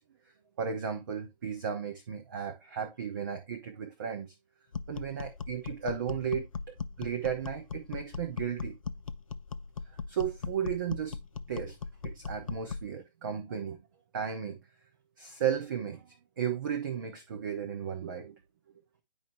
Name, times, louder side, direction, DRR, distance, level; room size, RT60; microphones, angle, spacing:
voice 1, 0.6-4.3 4.9-8.8 10.1-11.2 11.5-11.8 12.0-13.8 14.1-14.6 15.2-18.3, right 8 dB, 20° right, 0.6 m, -35 dB
sound 1, 4.7-12.9, left 5 dB, 35° left, 0.4 m, -39 dB
10.0 x 4.7 x 3.2 m
figure-of-eight pair, 140°, 29 cm